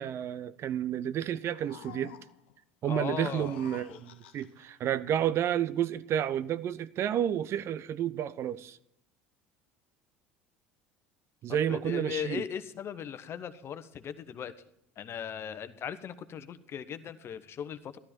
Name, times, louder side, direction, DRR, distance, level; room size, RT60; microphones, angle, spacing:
voice 1, 0.0-2.1 2.8-8.8 11.4-12.4, right 10 dB, 45° right, 0.6 m, -31 dB
sound 1, 1.2-2.6 3.1-4.7, left 11 dB, 75° left, 0.9 m, -50 dB
voice 2, 2.8-3.6 3.9-4.0 11.5-14.5 15.0-18.0, left 8 dB, 45° left, 1.0 m, -38 dB
13.0 x 12.5 x 4.4 m
hypercardioid pair, 70°, 6 cm